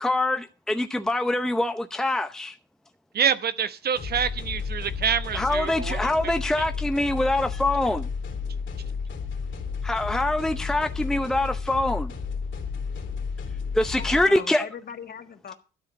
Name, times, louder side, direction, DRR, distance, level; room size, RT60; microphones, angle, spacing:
voice 1, 0.0-2.5 5.3-8.1 9.8-12.1 13.7-14.7, left 1 dB, 5° left, 0.7 m, -24 dB
voice 2, 3.1-6.0, right 7 dB, 55° right, 0.9 m, -26 dB
sound 1, 4.0-14.2, left 5 dB, 70° left, 3.2 m, -32 dB
voice 3, 14.0-15.5, left 7 dB, 50° left, 1.6 m, -40 dB
12.5 x 5.0 x 8.6 m
cardioid pair, 90°, 20 cm